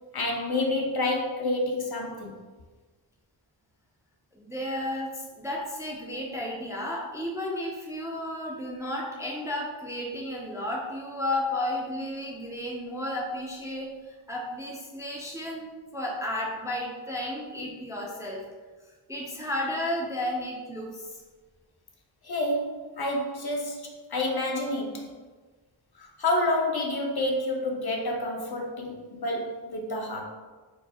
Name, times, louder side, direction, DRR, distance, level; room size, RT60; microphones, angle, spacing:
voice 1, 0.1-2.3 22.2-25.1 25.9-30.2, left 1 dB, 50° left, 0 dB, 0.6 m, -29 dB
voice 2, 4.3-18.4 19.1-21.2, left 1 dB, 5° right, -3 dB, 0.4 m, -33 dB
4.5 x 2.0 x 2.7 m, 1.4 s
wide cardioid pair, 70°, 48 cm